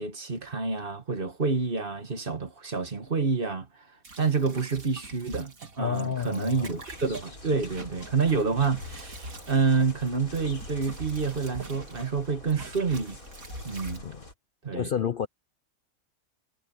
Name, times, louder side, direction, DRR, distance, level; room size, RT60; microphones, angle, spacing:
voice 1, 0.0-3.7 4.2-13.2 13.7-14.0 14.6-14.9, right 4 dB, 40° right, 1.8 m, -28 dB
sound 1, 4.0-12.2 12.5-14.0, right 3 dB, 80° right, 3.0 m, -45 dB
voice 2, 5.8-6.7 14.0-14.2 14.7-15.3, left 8 dB, 55° left, 0.6 m, -30 dB
sound 2, 6.5-14.3, left 1 dB, 80° left, 6.0 m, -45 dB
omnidirectional pair, 1.4 m